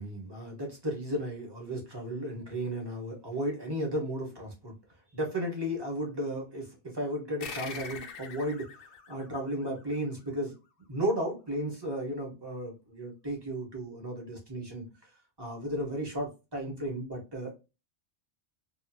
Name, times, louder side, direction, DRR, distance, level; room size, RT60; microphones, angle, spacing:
voice 1, 0.0-4.8 5.1-8.7 9.1-10.6 10.9-14.9 15.4-17.5, equal, 25° right, -1 dB, 1.1 m, -34 dB
sound 1, 7.4-10.4, left 5 dB, 65° left, 0.7 m, -44 dB
2.7 x 2.4 x 2.7 m, 0.28 s
omnidirectional pair, 1.1 m